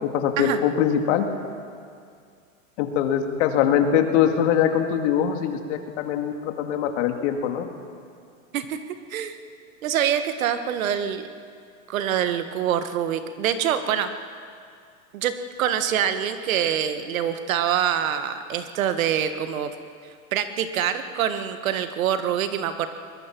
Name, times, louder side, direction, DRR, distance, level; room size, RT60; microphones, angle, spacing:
voice 1, 0.0-1.2 2.8-7.6, left 9 dB, 55° left, 5 dB, 2.4 m, -22 dB
voice 2, 9.8-11.3 11.9-14.1 15.1-19.7 20.3-22.9, right 9 dB, 75° right, 9 dB, 1.7 m, -25 dB
22.5 x 21.0 x 6.1 m, 2.3 s
supercardioid pair, 130°, 41 cm